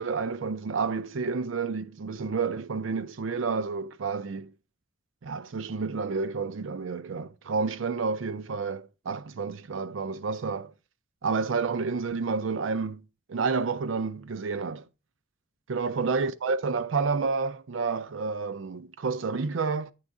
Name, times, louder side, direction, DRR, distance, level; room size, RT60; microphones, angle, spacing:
voice 1, 0.0-4.5 5.2-10.7 11.2-13.0 13.3-14.9 15.7-19.9, right 4 dB, 65° right, 0.5 m, -30 dB
8.8 x 3.5 x 6.4 m
head